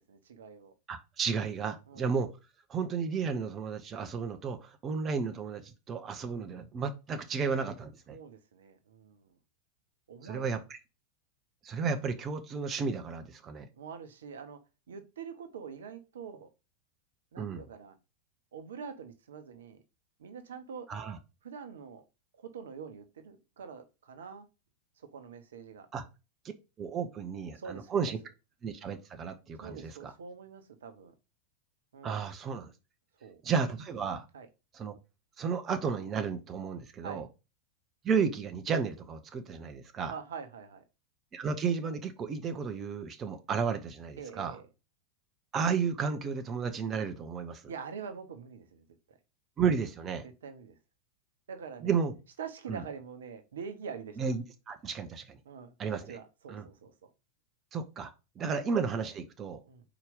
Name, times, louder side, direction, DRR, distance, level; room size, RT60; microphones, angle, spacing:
voice 1, 0.0-0.7 1.9-2.1 8.1-9.4 10.1-10.5 13.7-14.6 14.9-16.5 17.3-18.0 18.5-19.8 20.2-20.9 21.4-22.0 22.3-24.5 25.0-25.9 27.5-28.0 29.6-31.1 31.9-32.2 33.2-33.4 34.3-34.5 37.0-37.2 40.1-40.8 44.2-44.7 47.7-49.2 50.2-50.8 51.5-51.9 52.4-54.2 55.4-55.7 56.1-57.1 59.7-59.8, right 6 dB, 65° right, 0.9 m, -45 dB
voice 2, 0.9-2.3 2.7-8.2 10.2-10.8 11.6-13.7 17.4-17.6 20.9-21.2 25.9-26.0 26.8-28.2 28.6-30.1 32.0-32.7 33.4-34.3 34.7-34.9 35.4-37.3 38.0-40.1 41.3-44.6 45.5-47.6 49.6-50.2 51.8-52.1 52.7-52.8 54.2-55.4 55.8-56.2 56.5-56.6 57.7-58.1 58.4-59.6, right 5 dB, 25° right, 0.9 m, -33 dB
4.9 x 4.5 x 5.3 m
figure-of-eight pair, 90°, 0 cm